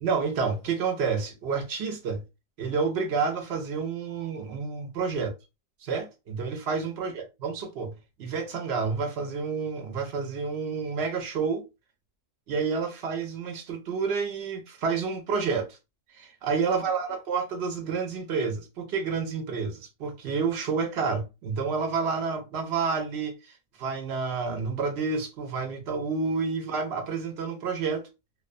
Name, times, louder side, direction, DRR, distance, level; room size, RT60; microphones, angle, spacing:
voice 1, 0.0-2.2 2.6-5.3 5.8-7.9 8.2-11.6 12.5-15.8 16.1-28.1, right 5 dB, 65° right, 0.7 m, -29 dB
2.3 x 2.2 x 2.5 m
omnidirectional pair, 1.3 m